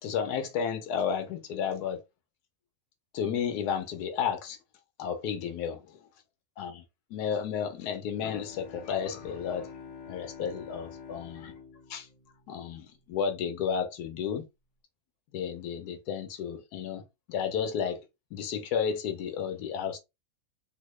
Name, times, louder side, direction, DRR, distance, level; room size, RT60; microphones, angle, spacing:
voice 1, 0.0-2.0 3.1-4.6 5.0-5.8 6.6-6.8 7.1-9.7 10.1-11.5 11.9-12.1 12.5-14.4 15.3-17.0 17.3-18.0 18.3-20.0, left 7 dB, 85° left, 1.2 m, -32 dB
Bowed string instrument, 8.1-13.2, left 6 dB, 20° left, 0.8 m, -47 dB
3.8 x 2.1 x 3.1 m
omnidirectional pair, 1.6 m